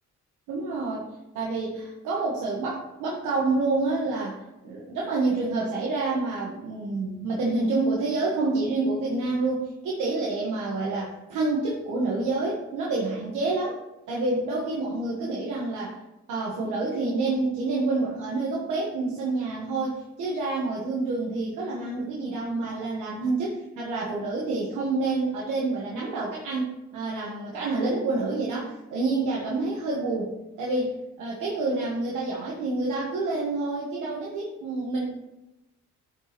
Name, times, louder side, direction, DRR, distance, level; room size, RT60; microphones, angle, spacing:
voice 1, 0.5-1.1 1.3-13.8 14.1-15.9 16.3-30.3 30.6-35.0, right 3 dB, 90° right, -4 dB, 1.3 m, -28 dB
11.5 x 4.6 x 2.9 m, 0.98 s
cardioid pair, 90°, 30 cm